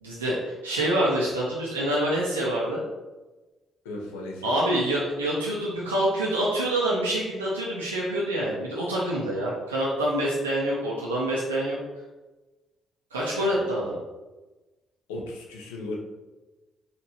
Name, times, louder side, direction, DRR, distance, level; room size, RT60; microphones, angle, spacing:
voice 1, 0.0-2.8 4.4-11.8 13.1-14.0, right 1 dB, 85° right, -5 dB, 0.4 m, -26 dB
voice 2, 3.8-4.8 13.3-13.9 15.1-16.0, left 2 dB, 75° left, 0 dB, 0.5 m, -37 dB
4.2 x 2.9 x 2.8 m, 1.2 s
figure-of-eight pair, 40°, 0 cm